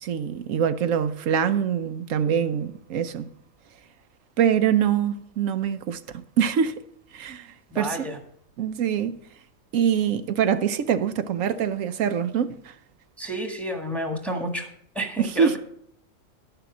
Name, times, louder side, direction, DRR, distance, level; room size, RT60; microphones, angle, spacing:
voice 1, 0.0-3.3 4.4-6.8 7.1-8.1 8.6-9.2 9.7-12.7 15.2-15.6, right 8 dB, 85° right, 1.1 m, -24 dB
voice 2, 7.7-8.2 13.2-14.7 14.9-15.6, right 1 dB, ahead, 1.5 m, -30 dB
11.5 x 6.8 x 6.0 m
omnidirectional pair, 1.3 m